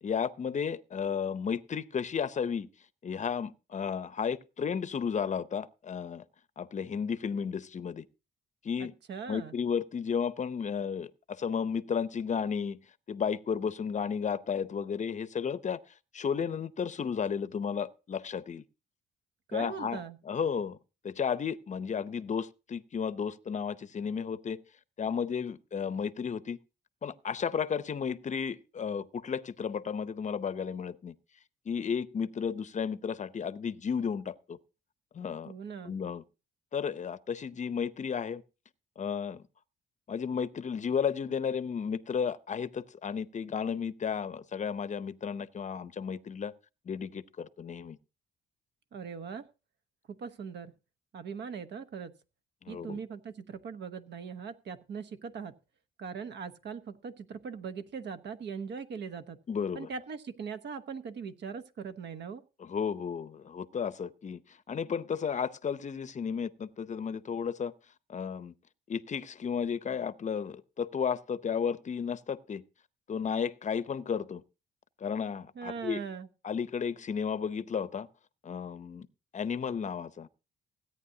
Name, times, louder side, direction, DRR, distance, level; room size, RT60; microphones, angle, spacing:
voice 1, 0.0-2.7 3.0-6.2 6.6-8.1 8.6-8.9 9.3-12.8 13.1-15.8 16.1-18.6 19.5-20.0 20.3-20.8 21.0-24.6 25.0-26.6 27.0-31.1 31.7-34.6 35.1-35.5 35.8-36.2 36.7-38.4 39.0-39.4 40.1-46.5 46.9-48.0 52.6-53.0 59.5-59.9 62.6-67.7 68.1-68.5 68.9-72.6 73.1-74.4 75.0-76.0 76.4-78.1 78.4-79.1 79.3-80.3, left 6 dB, 35° left, 0.7 m, -33 dB
voice 2, 8.8-9.6 19.5-20.2 35.5-36.0 48.9-49.5 50.1-50.7 51.1-52.1 52.7-55.6 56.0-59.4 59.7-62.4 75.5-76.3, right 6 dB, 60° right, 1.1 m, -40 dB
16.5 x 9.2 x 2.7 m
cardioid pair, 90°, 20 cm